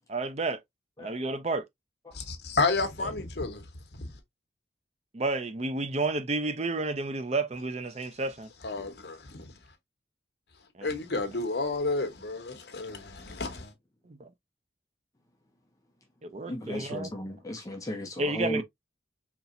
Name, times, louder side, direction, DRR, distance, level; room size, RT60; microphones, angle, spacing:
voice 1, 0.1-0.6 1.0-1.6 3.0-3.1 5.1-8.5 10.7-10.9 14.1-14.3 16.2-17.1 18.2-18.6, right 2 dB, 35° right, 0.6 m, -31 dB
voice 2, 2.1-3.6 4.0-4.1 8.6-9.5 10.8-13.7, left 3 dB, 65° left, 1.0 m, -31 dB
voice 3, 16.5-18.6, equal, 20° left, 0.6 m, -35 dB
4.2 x 2.9 x 2.5 m
head